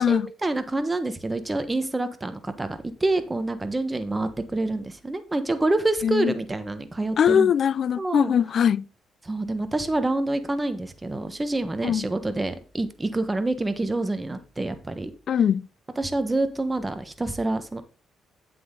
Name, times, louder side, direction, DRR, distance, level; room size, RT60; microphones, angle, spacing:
voice 1, 0.0-7.5 8.0-8.3 9.2-15.1 16.0-17.8, right 2 dB, 15° right, 1.3 m, -27 dB
voice 2, 6.0-6.3 7.2-8.9 11.8-12.1 15.3-15.7, left 8 dB, 60° left, 0.3 m, -21 dB
8.8 x 7.7 x 3.8 m
cardioid pair, 90°, 0 cm